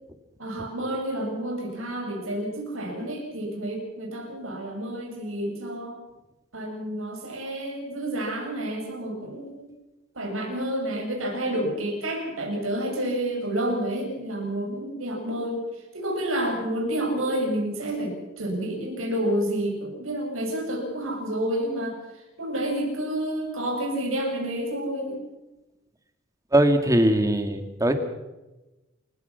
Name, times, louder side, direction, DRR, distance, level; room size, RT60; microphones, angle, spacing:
voice 1, 0.4-6.0 6.5-9.7 10.2-15.6 15.9-22.0 22.4-25.2, right 1 dB, 90° right, 1 dB, 7.1 m, -29 dB
voice 2, 26.5-27.9, right 1 dB, 15° right, 6 dB, 2.4 m, -20 dB
29.0 x 16.5 x 6.0 m, 1.0 s
head